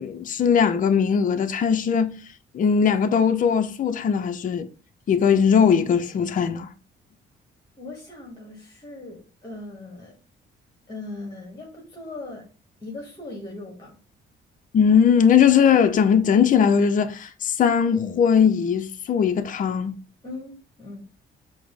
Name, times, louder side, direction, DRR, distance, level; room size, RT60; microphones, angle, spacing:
voice 1, 0.0-2.2 2.5-4.7 5.1-6.7 14.7-19.9, left 7 dB, 40° left, 0.5 m, -19 dB
voice 2, 7.8-10.2 10.9-12.5 12.8-14.0 20.2-21.0, left 2 dB, 20° left, 1.2 m, -39 dB
4.8 x 2.0 x 3.6 m
cardioid pair, 90°, 20 cm